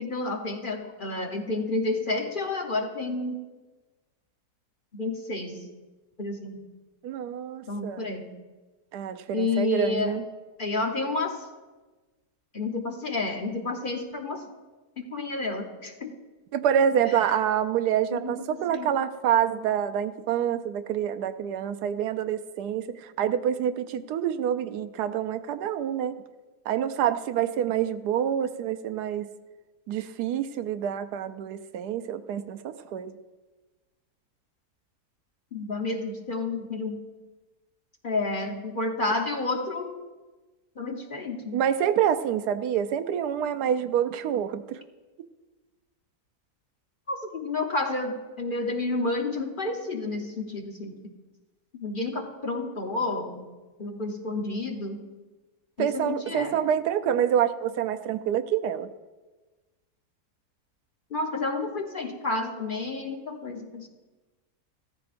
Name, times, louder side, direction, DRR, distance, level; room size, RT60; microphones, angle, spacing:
voice 1, 0.0-3.4 4.9-5.7 6.2-6.6 7.7-8.3 9.3-10.2 10.6-11.5 12.5-14.4 15.0-16.1 18.1-18.9 35.5-37.0 38.0-39.9 40.8-41.6 47.1-51.0 51.8-53.4 53.8-55.0 55.8-56.5 61.1-63.9, left 2 dB, 40° left, 3 dB, 0.9 m, -30 dB
voice 2, 7.0-8.1 8.9-10.2 16.5-26.2 26.7-29.3 29.9-33.2 41.5-44.8 55.8-58.9, right 9 dB, 90° right, 11 dB, 1.2 m, -27 dB
15.5 x 14.0 x 2.5 m, 1.2 s
omnidirectional pair, 1.7 m